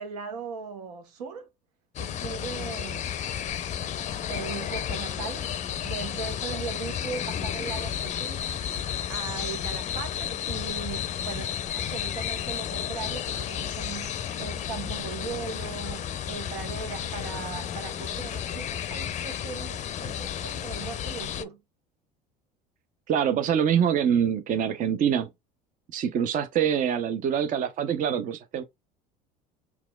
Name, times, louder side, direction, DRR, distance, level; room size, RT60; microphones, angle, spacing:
voice 1, 0.0-1.5 2.0-3.2 4.3-5.6 5.8-8.5 8.8-21.6, right 5 dB, 80° right, 0.9 m, -38 dB
sound 1, 2.0-21.4, left 9 dB, 35° left, 0.5 m, -32 dB
voice 2, 23.1-25.3 25.9-28.6, right 8 dB, 40° right, 0.6 m, -25 dB
5.8 x 2.3 x 2.2 m
hypercardioid pair, 80°, 20 cm